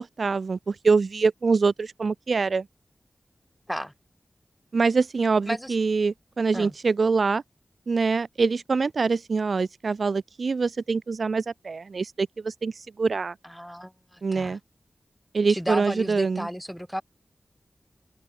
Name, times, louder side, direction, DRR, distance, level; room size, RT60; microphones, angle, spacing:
voice 1, 0.0-2.7 4.7-7.4 7.9-13.3 14.2-14.6 15.3-16.5, right 4 dB, 70° right, 2.5 m, -24 dB
voice 2, 13.4-14.6 15.5-17.0, equal, ahead, 1.6 m, -33 dB
wide cardioid pair, 105°, 0 cm